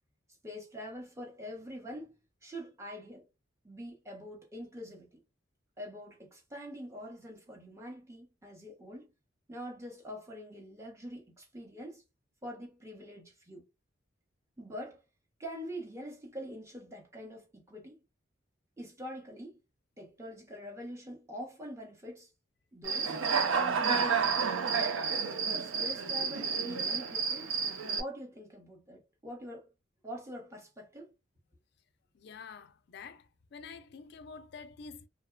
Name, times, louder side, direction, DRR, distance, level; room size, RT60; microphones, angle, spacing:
voice 1, 0.4-2.1 2.4-3.3 3.6-5.2 5.8-9.1 9.5-12.0 12.4-13.6 14.6-15.0 15.4-18.0 18.8-19.6 20.0-22.3 22.7-23.2 23.5-24.8 25.5-27.5 27.9-29.7 30.0-31.1, equal, 15° right, 0.8 m, -44 dB
Human voice / Cricket, 22.8-28.0, right 6 dB, 85° right, 0.4 m, -30 dB
voice 2, 32.1-33.2 33.5-35.1, left 5 dB, 55° left, 0.4 m, -47 dB
2.8 x 2.1 x 2.2 m
head